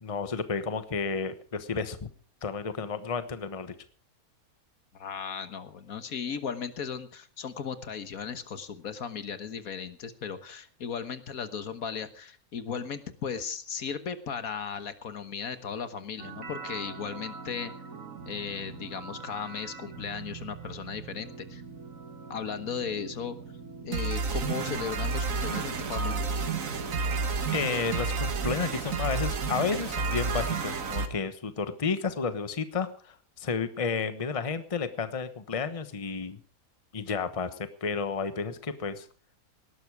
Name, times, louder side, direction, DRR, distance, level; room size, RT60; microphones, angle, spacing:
voice 1, 0.0-2.1 2.4-3.7 27.5-36.4 36.9-39.1, left 5 dB, 25° left, 11 dB, 1.1 m, -32 dB
voice 2, 4.9-17.7 18.3-21.6 22.3-23.4 23.8-26.3, left 6 dB, 70° left, 11 dB, 1.7 m, -36 dB
sound 1, 16.2-31.1, right 4 dB, 65° right, 1.8 m, -33 dB
18.5 x 12.5 x 4.8 m, 0.42 s
omnidirectional pair, 1.5 m